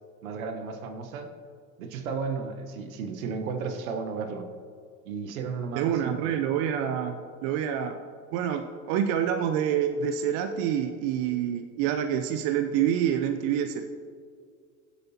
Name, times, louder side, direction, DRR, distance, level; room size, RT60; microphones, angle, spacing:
voice 1, 0.2-1.3 1.8-4.5 5.0-6.4, right 5 dB, 70° right, 8 dB, 1.1 m, -34 dB
voice 2, 5.8-8.0 8.3-13.8, right 9 dB, 50° right, 7 dB, 0.7 m, -27 dB
16.0 x 8.3 x 2.8 m, 2.1 s
figure-of-eight pair, 70°, 43 cm